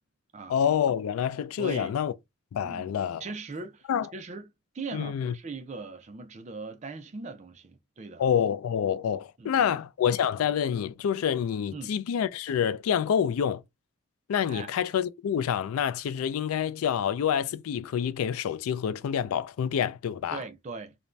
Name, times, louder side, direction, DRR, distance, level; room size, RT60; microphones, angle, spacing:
voice 1, 0.5-2.1 2.5-3.2 3.9-4.1 4.9-5.3 8.2-13.6 14.3-20.4, left 8 dB, 90° left, 0.3 m, -27 dB
voice 2, 1.6-1.9 2.6-2.9 3.2-8.3 9.4-9.7 11.7-11.9 14.5-14.7 20.3-21.0, right 4 dB, 35° right, 0.4 m, -40 dB
2.5 x 2.2 x 3.0 m
head